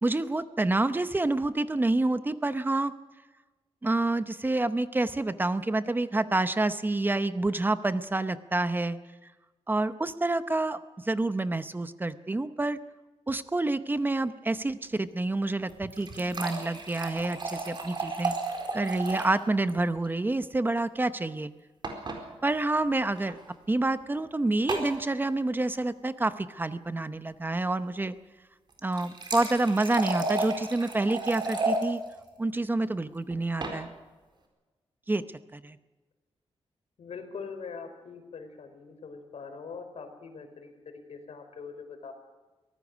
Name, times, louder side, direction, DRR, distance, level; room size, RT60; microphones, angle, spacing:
voice 1, 0.0-2.9 3.8-9.0 9.7-12.8 13.3-18.3 18.7-21.5 22.4-23.4 23.7-28.1 28.8-32.0 32.4-33.9 35.1-35.2 35.5-35.8, right 2 dB, 20° right, 11 dB, 0.8 m, -28 dB
sound 1, 15.7-19.4 19.7-19.8 20.0-20.1 21.8-22.2 23.2-23.3 24.7-25.0 28.7-31.8 33.3-33.8, right 2 dB, 45° right, 4.4 m, -33 dB
voice 2, 37.0-42.1, left 5 dB, 80° left, 7 dB, 4.3 m, -42 dB
24.0 x 18.5 x 6.3 m, 1.2 s
wide cardioid pair, 155°, 11 cm